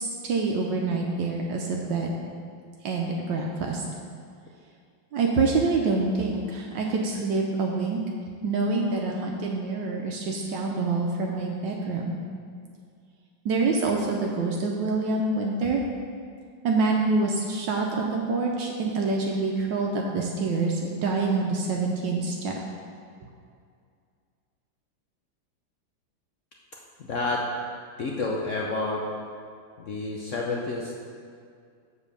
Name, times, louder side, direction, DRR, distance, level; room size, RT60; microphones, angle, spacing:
voice 1, 0.0-2.1 2.8-3.8 5.1-8.0 8.4-12.2 13.4-15.8 16.6-22.5, right 3 dB, 75° right, 0 dB, 1.3 m, -26 dB
voice 2, 27.1-27.4 28.0-29.0 29.8-30.9, left 3 dB, 70° left, -2 dB, 0.7 m, -29 dB
7.1 x 4.5 x 6.6 m, 2.2 s
omnidirectional pair, 2.1 m